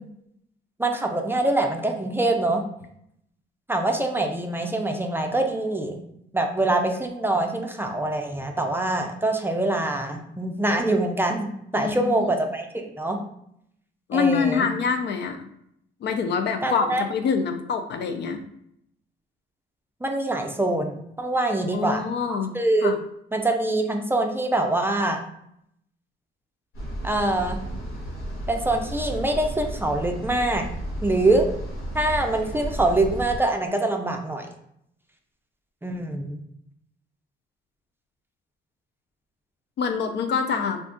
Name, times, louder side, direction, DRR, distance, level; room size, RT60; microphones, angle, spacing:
voice 1, 0.8-2.6 3.7-6.0 6.3-13.2 14.1-14.7 16.6-17.0 20.0-23.0 23.3-25.2 27.0-27.6 28.5-30.7 31.0-31.5 31.9-34.5 35.8-36.4, right 2 dB, 10° right, 3 dB, 0.4 m, -24 dB
voice 2, 11.7-12.3 14.1-15.5 16.0-18.4 21.7-22.5 22.8-23.0 39.8-40.8, left 5 dB, 60° left, 7 dB, 0.4 m, -25 dB
sound 1, 26.7-33.4, right 1 dB, 85° left, 1.4 m, -33 dB
2.5 x 2.3 x 3.7 m, 0.74 s
cardioid pair, 90°, 20 cm